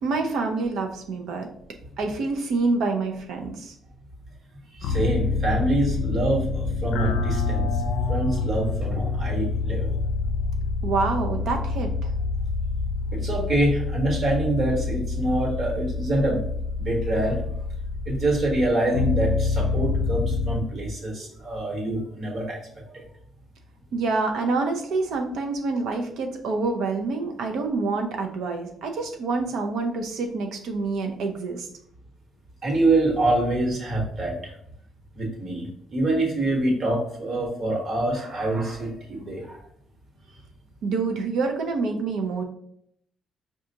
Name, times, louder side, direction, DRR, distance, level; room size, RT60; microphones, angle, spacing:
voice 1, 0.0-1.5 2.0-3.7 10.8-12.1 23.9-31.7 40.8-42.4, right 3 dB, 80° right, 3 dB, 0.6 m, -27 dB
sound 1, 4.8-20.6, left 4 dB, 90° left, 0.4 m, -27 dB
voice 2, 4.8-7.7 8.1-9.9 13.1-16.5 16.8-17.4 18.1-22.6 22.9-23.0 32.6-34.5 35.2-39.6, right 1 dB, 50° right, 0 dB, 1.3 m, -25 dB
4.9 x 2.4 x 2.7 m, 0.69 s
cardioid pair, 90°, 0 cm